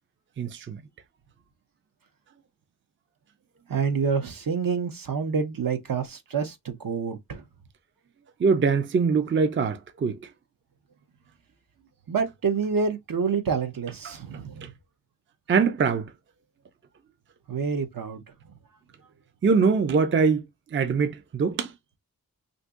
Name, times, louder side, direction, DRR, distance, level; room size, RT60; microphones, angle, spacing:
voice 1, 0.4-0.8 8.4-10.3 14.6-14.7 15.5-16.1 19.4-20.4 20.7-21.7, right 5 dB, 35° right, 0.4 m, -23 dB
voice 2, 3.7-7.4 12.1-14.7 17.5-18.2, right 5 dB, 70° right, 0.8 m, -27 dB
2.7 x 2.5 x 3.6 m
wide cardioid pair, 95°, 35 cm